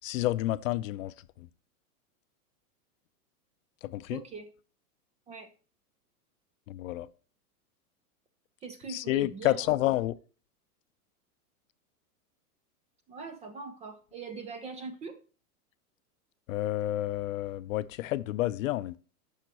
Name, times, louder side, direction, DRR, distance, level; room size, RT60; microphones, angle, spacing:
voice 1, 0.0-1.5 3.8-4.2 6.7-7.1 8.9-10.1 16.5-19.0, left 15 dB, 60° left, 0.6 m, -30 dB
voice 2, 4.1-4.5 5.3-5.5 8.6-9.8 13.1-15.2, right 4 dB, 15° right, 0.5 m, -42 dB
13.5 x 5.8 x 2.9 m
hypercardioid pair, 130°, 46 cm